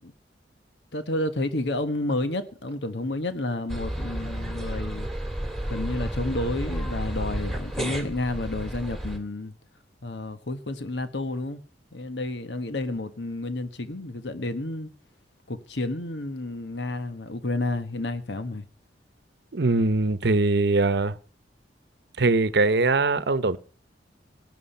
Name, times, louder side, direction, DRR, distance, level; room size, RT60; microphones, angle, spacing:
voice 1, 0.9-5.1 5.7-9.5 10.0-11.6 11.9-14.9 15.5-18.7, left 2 dB, 75° left, 1.3 m, -30 dB
sound 1, 3.7-9.2, right 1 dB, ahead, 2.4 m, -31 dB
voice 2, 19.5-21.2 22.2-23.6, right 3 dB, 65° right, 0.9 m, -22 dB
17.5 x 11.0 x 5.5 m
head